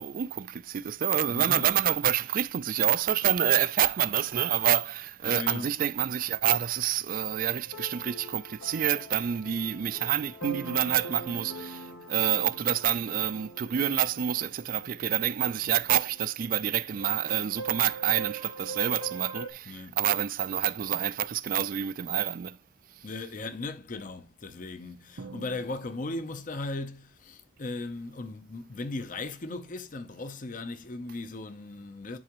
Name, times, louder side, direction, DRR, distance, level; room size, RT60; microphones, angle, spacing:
voice 1, 0.0-22.6 23.0-23.1, right 10 dB, 45° right, 0.3 m, -27 dB
voice 2, 1.3-1.7 5.2-5.7 19.6-20.0 20.3-20.4 23.0-32.2, left 2 dB, 40° left, 0.7 m, -37 dB
sound 1, 7.3-19.5, right 3 dB, 80° left, 1.2 m, -43 dB
Drum, 25.2-26.9, right 3 dB, 85° right, 0.7 m, -48 dB
11.0 x 3.8 x 3.0 m
head